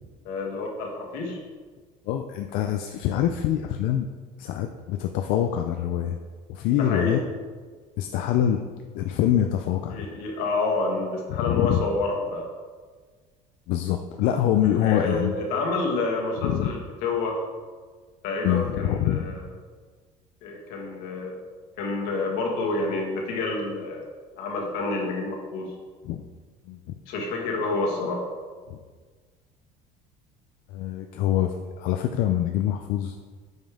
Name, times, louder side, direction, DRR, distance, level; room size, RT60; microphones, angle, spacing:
voice 1, 0.3-1.4 6.7-7.2 9.9-12.5 14.8-17.4 18.2-19.4 20.4-21.4 21.8-24.1 24.4-25.7 27.1-28.3, left 3 dB, 75° left, 0 dB, 1.7 m, -28 dB
voice 2, 2.1-4.1 4.4-6.2 6.5-7.2 8.0-8.7 8.9-10.1 11.3-11.8 13.7-15.3 16.4-16.7 18.4-19.2 26.0-26.2 26.7-26.8 28.7-28.8 30.7-33.2, left 11 dB, 60° left, 5 dB, 0.4 m, -25 dB
9.1 x 5.4 x 3.5 m, 1.5 s
cardioid pair, 170°, 16 cm